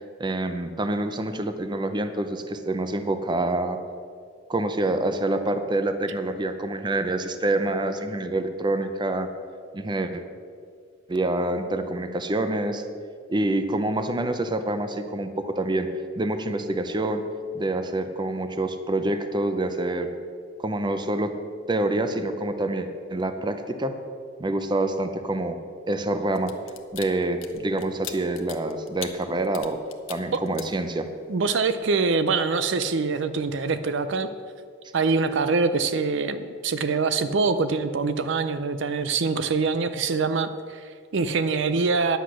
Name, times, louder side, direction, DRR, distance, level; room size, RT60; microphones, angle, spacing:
voice 1, 0.2-3.8 4.5-9.3 9.7-10.2 11.1-12.8 13.3-15.9 16.2-17.2 17.5-20.1 20.6-21.4 21.7-24.0 24.4-25.6 25.9-26.5 26.9-29.8 30.1-31.1, right 2 dB, 25° right, 8 dB, 0.6 m, -26 dB
sound 1, 26.3-31.3 31.7-31.9, left 11 dB, 80° left, 0.8 m, -41 dB
voice 2, 31.3-34.3 34.9-42.2, right 4 dB, 65° right, 11 dB, 0.5 m, -24 dB
10.0 x 8.0 x 6.2 m, 2.2 s
head